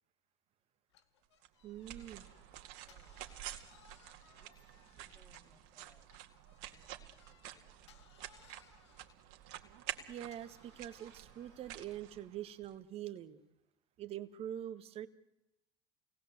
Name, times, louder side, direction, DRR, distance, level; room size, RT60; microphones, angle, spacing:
sound 1, 0.9-5.7 6.1-12.1, left 9 dB, 85° left, 1.4 m, -67 dB
sound 2, 1.4-12.7, right 13 dB, 65° right, 2.2 m, -50 dB
voice 1, 1.6-2.3 10.1-13.4 14.0-15.1, right 11 dB, 45° right, 12 dB, 1.5 m, -44 dB
voice 2, 2.7-3.6 4.4-6.3 6.7-8.1, left 2 dB, 25° left, 1 dB, 7.2 m, -71 dB
28.5 x 19.0 x 7.9 m, 0.92 s
hypercardioid pair, 90°, 14 cm